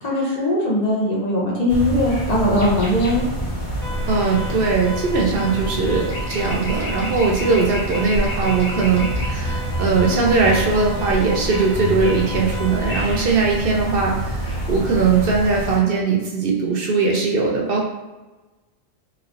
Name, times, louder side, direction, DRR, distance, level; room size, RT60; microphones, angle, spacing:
voice 1, 0.0-3.2 10.0-10.3, left 1 dB, 45° left, -5 dB, 0.7 m, -20 dB
sound 1, 1.7-15.8, right 1 dB, 85° left, 1.3 m, -27 dB
sound 2, 2.5-3.2 5.8-9.4 12.0-12.5 12.8-13.1, left 1 dB, 65° left, 1.0 m, -34 dB
Alarm, 3.8-13.0, equal, ahead, 0.4 m, -35 dB
voice 2, 4.1-17.9, right 4 dB, 65° right, -1 dB, 0.7 m, -20 dB
3.1 x 3.1 x 2.5 m, 1.2 s
omnidirectional pair, 1.1 m